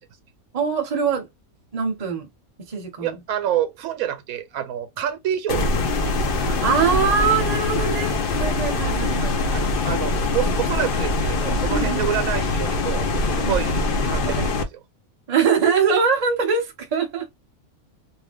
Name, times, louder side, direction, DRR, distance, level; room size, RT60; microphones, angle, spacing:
voice 1, 0.5-1.3 1.7-2.3 2.7-3.2 6.3-9.3 10.4-10.5 11.7-12.1 13.4-13.6 14.2-14.5 15.3-17.3, right 6 dB, 35° right, 0.8 m, -23 dB
voice 2, 3.0-5.8 9.5-14.8 15.3-15.4, right 10 dB, 75° right, 1.1 m, -28 dB
sound 1, 5.5-14.6, left 2 dB, 50° left, 0.7 m, -23 dB
2.7 x 2.3 x 3.4 m
omnidirectional pair, 1.5 m